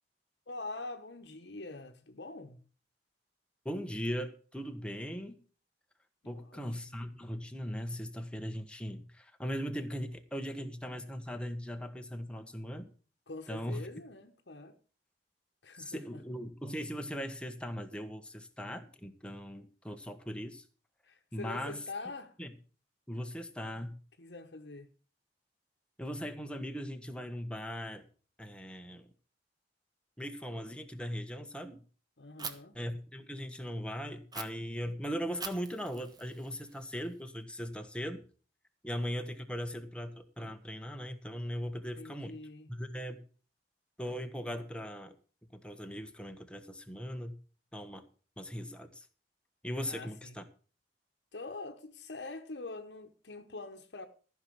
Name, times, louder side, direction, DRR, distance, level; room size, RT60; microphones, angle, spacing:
voice 1, 0.5-2.6 6.2-7.0 13.3-14.8 15.6-16.2 21.0-22.4 24.2-24.9 32.2-32.8 42.0-42.7 49.8-50.4 51.3-54.1, left 3 dB, 70° left, 1.2 m, -44 dB
voice 2, 3.6-5.4 6.2-12.9 13.5-13.8 15.8-20.6 21.3-21.8 22.4-22.5 23.1-23.9 26.0-28.0 28.4-29.1 30.2-31.8 32.7-38.2 38.8-42.3 42.7-43.2 44.0-45.1 45.5-47.3 47.7-48.1 48.4-49.1 49.6-50.4, equal, 5° left, 1.4 m, -39 dB
Fire, 32.4-32.5 34.3-34.4 35.4-37.4, right 5 dB, 25° right, 1.3 m, -44 dB
14.5 x 5.9 x 7.8 m
head